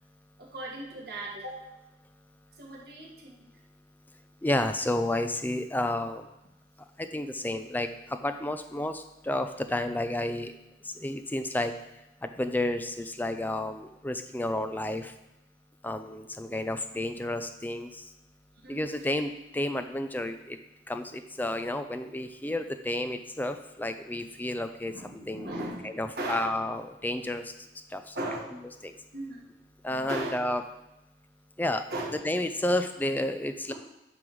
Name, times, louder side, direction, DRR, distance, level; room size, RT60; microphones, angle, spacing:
voice 1, 0.4-1.6 2.6-3.5 18.5-19.0 24.9-25.9 26.2-26.5 28.1-28.6 29.1-29.5 29.9-30.4 31.9-32.2, right 1 dB, 65° right, -4 dB, 1.8 m, -37 dB
voice 2, 4.4-6.3 7.0-10.5 10.9-11.7 12.2-15.1 15.8-17.9 18.7-20.6 20.9-25.5 25.8-27.5 27.9-28.2 28.8-28.9 29.8-30.6 31.6-31.8 32.2-33.7, left 1 dB, 10° left, 8 dB, 0.5 m, -31 dB
9.7 x 3.5 x 6.2 m, 0.95 s
head